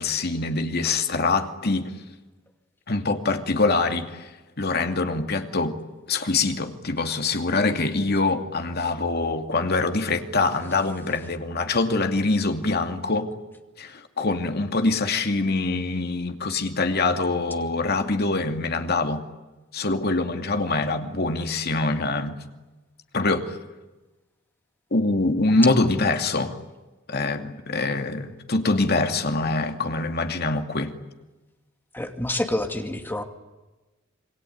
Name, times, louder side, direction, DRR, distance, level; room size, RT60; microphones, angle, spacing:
voice 1, 0.0-1.9 2.9-4.3 4.6-5.8 6.1-13.3 13.8-19.2 19.7-22.4 23.1-23.6 24.9-26.6 27.1-30.9, left 3 dB, 55° left, 2.5 m, -24 dB
voice 2, 31.9-33.2, left 1 dB, 10° left, 2.4 m, -27 dB
27.0 x 23.0 x 9.4 m
head